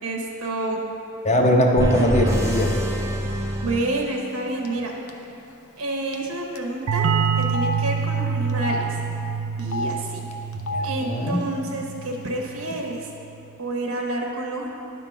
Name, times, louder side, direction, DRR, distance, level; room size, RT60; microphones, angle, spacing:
voice 1, 0.0-0.8 3.6-5.0 5.8-7.1 7.4-9.0 9.6-10.2 10.8-13.1 13.6-14.7, right 2 dB, 90° right, 0 dB, 1.0 m, -29 dB
voice 2, 1.2-2.9 10.7-11.4, equal, 30° left, 1 dB, 0.8 m, -21 dB
sound 1, 1.8-4.6, equal, 15° right, 0.6 m, -26 dB
Telephone, 4.7-4.8 5.1-5.2 6.1-6.3 6.6-6.7 7.4-7.8 8.5-8.8 9.6-9.9 10.5-10.9 11.7-11.8 12.1-12.7, left 2 dB, 85° left, 0.6 m, -30 dB
sound 2, 6.9-12.3, right 6 dB, 70° right, 0.4 m, -26 dB
11.0 x 3.7 x 5.9 m, 2.9 s
head